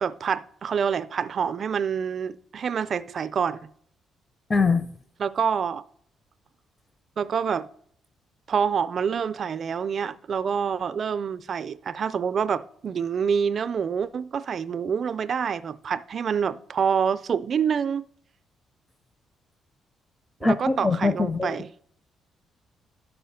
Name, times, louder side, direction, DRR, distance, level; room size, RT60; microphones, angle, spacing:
voice 1, 0.0-3.6 5.2-5.8 7.2-7.7 8.5-18.1 20.4-21.7, right 7 dB, 50° right, 0.4 m, -27 dB
voice 2, 4.5-4.9 20.4-21.6, left 3 dB, 25° left, 0.5 m, -22 dB
11.0 x 5.5 x 5.7 m
cardioid pair, 90°, 0 cm